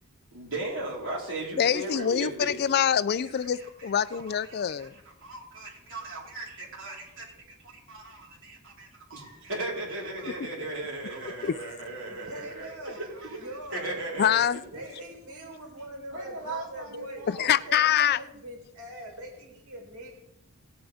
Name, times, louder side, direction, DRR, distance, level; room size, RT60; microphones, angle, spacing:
voice 1, 0.3-2.6 3.2-3.3 3.8-4.9 5.2-7.4 7.7-14.5 14.7-15.0 16.1-17.4, right 2 dB, 60° right, 4.1 m, -37 dB
voice 2, 1.6-4.9 11.4-11.6 14.2-14.6 17.3-18.2, left 9 dB, 45° left, 0.4 m, -25 dB
voice 3, 12.1-14.0 14.7-20.1, right 1 dB, 85° right, 4.0 m, -42 dB
18.5 x 8.8 x 3.5 m
head